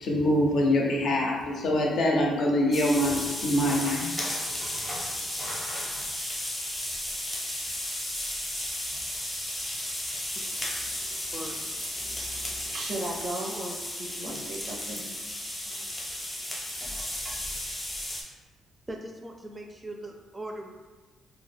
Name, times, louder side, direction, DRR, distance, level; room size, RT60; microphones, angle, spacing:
voice 1, 0.0-4.1, left 1 dB, 65° left, -2 dB, 0.6 m, -24 dB
sound 1, 2.7-18.2, left 1 dB, 15° left, 0.7 m, -34 dB
voice 2, 10.4-15.2 15.6-16.9, right 2 dB, 80° right, -2 dB, 0.5 m, -40 dB
voice 3, 18.9-20.7, right 1 dB, 20° right, 2 dB, 0.4 m, -39 dB
2.3 x 2.0 x 3.3 m, 1.3 s
cardioid pair, 90°, 0 cm